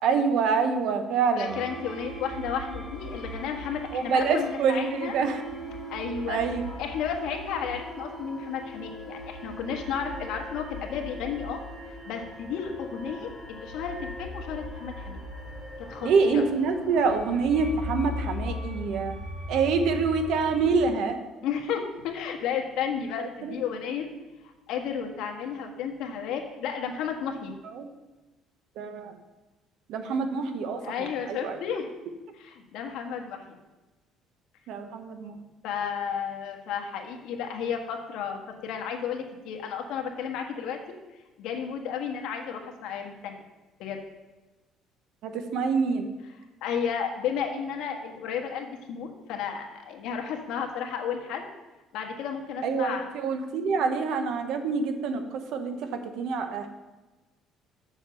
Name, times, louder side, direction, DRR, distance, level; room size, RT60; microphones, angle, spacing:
voice 1, 0.0-1.6 3.9-5.4 6.3-6.6 16.0-19.1 19.5-21.2 23.2-23.6 27.6-27.9 28.8-29.2 29.9-31.6 34.7-35.4 45.2-46.1 52.6-56.7, right 5 dB, 65° right, 7 dB, 1.0 m, -26 dB
voice 2, 1.4-5.1 5.9-6.4 6.8-11.6 11.9-15.2 15.8-16.4 21.4-24.1 24.7-27.5 30.8-31.9 32.3-33.6 35.6-40.8 41.4-43.4 43.8-44.0 46.6-51.5 51.9-53.1, left 7 dB, 70° left, 2 dB, 1.5 m, -33 dB
sound 1, 1.4-20.7, left 1 dB, ahead, 2.8 m, -39 dB
7.2 x 6.5 x 6.8 m, 1.1 s
cardioid pair, 155°, 0 cm